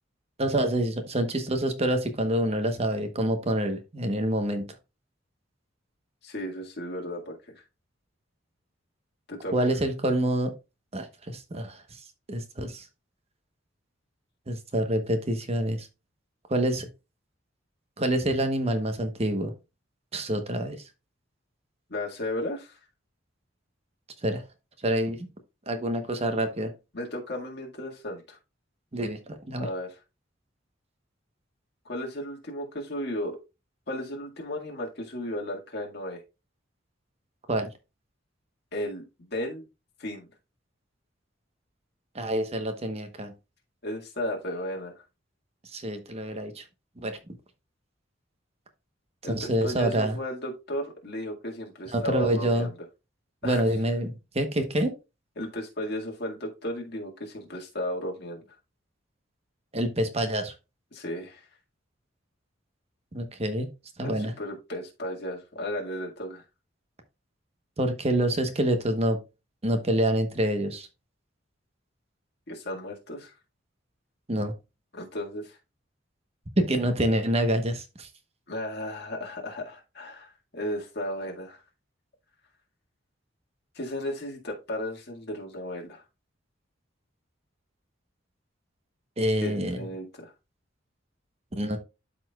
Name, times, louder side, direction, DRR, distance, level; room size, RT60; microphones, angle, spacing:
voice 1, 0.4-4.6 9.5-10.5 10.9-12.0 12.3-12.9 14.5-15.9 16.5-16.9 18.0-19.5 20.1-20.8 24.2-24.4 24.8-25.3 25.7-26.7 28.9-29.7 37.5-37.7 42.1-43.3 45.7-46.6 47.0-47.2 49.2-50.2 51.9-52.7 53.4-54.9 59.7-60.5 63.1-63.7 64.0-64.3 67.8-69.2 69.6-70.9 74.3-74.5 76.6-78.1 89.2-89.9 91.6-91.8, right 1 dB, 35° right, 1.0 m, -27 dB
voice 2, 6.2-7.6 9.3-9.7 21.9-22.8 26.9-28.4 29.5-29.9 31.9-33.4 33.9-36.2 38.7-39.7 40.0-40.3 43.8-45.0 49.2-52.8 53.4-53.6 55.4-58.6 60.9-61.4 64.0-66.4 72.5-73.3 74.9-75.6 78.5-81.6 83.8-86.0 89.4-90.3, left 1 dB, 60° left, 1.9 m, -35 dB
12.5 x 4.3 x 2.3 m
head